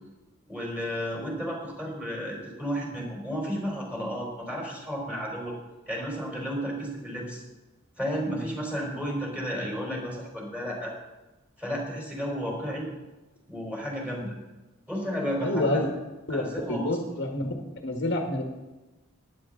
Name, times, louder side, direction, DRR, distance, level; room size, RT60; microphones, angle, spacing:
voice 1, 0.5-5.5 5.9-7.4 8.0-10.9 11.6-12.9 13.5-14.3 14.9-15.8 16.3-16.9, equal, 5° right, -2 dB, 4.3 m, -32 dB
voice 2, 15.4-15.8 16.3-16.4 16.7-17.5 17.8-18.4, left 2 dB, 60° left, 3 dB, 1.6 m, -27 dB
15.0 x 10.5 x 3.8 m, 1.1 s
head